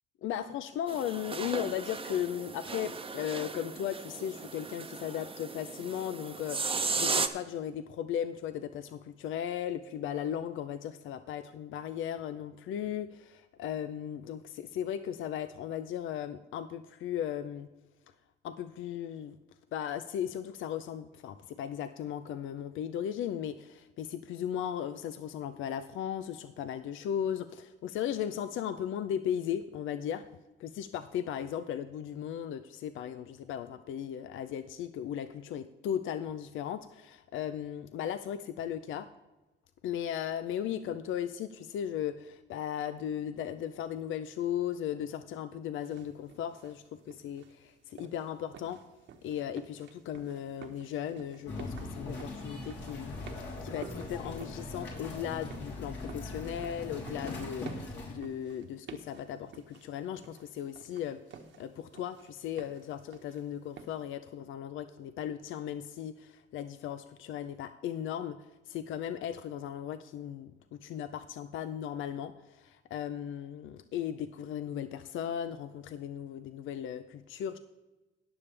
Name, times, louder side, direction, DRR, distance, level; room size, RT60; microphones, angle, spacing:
voice 1, 0.2-6.6 7.0-17.7 18.4-19.4 19.7-30.3 30.6-39.1 39.8-48.8 49.2-53.1 53.6-61.2 61.6-77.6, left 9 dB, 80° left, 11 dB, 0.6 m, -36 dB
sound 1, 0.9-7.3, right 4 dB, 25° right, 0.8 m, -36 dB
sound 2, 45.7-64.1, right 6 dB, 70° right, 1.3 m, -53 dB
sound 3, 51.5-58.1, left 2 dB, 65° left, 3.6 m, -40 dB
19.5 x 7.1 x 3.3 m, 1.1 s
cardioid pair, 90°, 20 cm